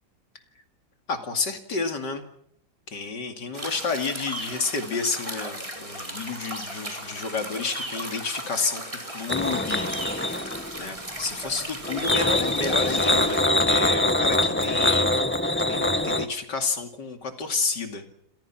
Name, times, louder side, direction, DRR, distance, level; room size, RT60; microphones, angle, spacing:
voice 1, 1.1-2.2 2.9-10.4 10.8-15.2 15.7-18.1, left 4 dB, 60° left, 6 dB, 3.0 m, -30 dB
sound 1, 3.5-13.4, right 1 dB, 15° right, 4.4 m, -36 dB
sound 2, 9.3-10.8 11.8-16.3, left 1 dB, 10° left, 0.9 m, -23 dB
28.0 x 27.0 x 6.0 m, 0.69 s
omnidirectional pair, 2.2 m